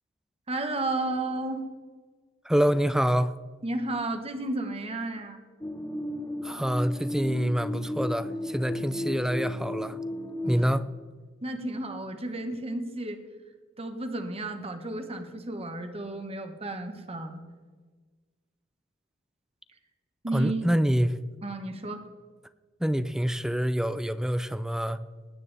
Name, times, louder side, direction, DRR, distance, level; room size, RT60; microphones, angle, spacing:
voice 1, 0.5-1.6 3.6-5.4 10.4-10.7 11.4-13.2 13.8-17.4 20.2-20.7 21.4-22.0, right 2 dB, 30° right, 1.2 m, -33 dB
voice 2, 2.4-3.3 6.4-10.0 10.5-10.9 20.3-21.2 22.8-25.0, equal, 5° right, 0.4 m, -26 dB
sound 1, 5.6-10.7, left 1 dB, 15° left, 0.9 m, -34 dB
21.0 x 9.4 x 3.4 m
head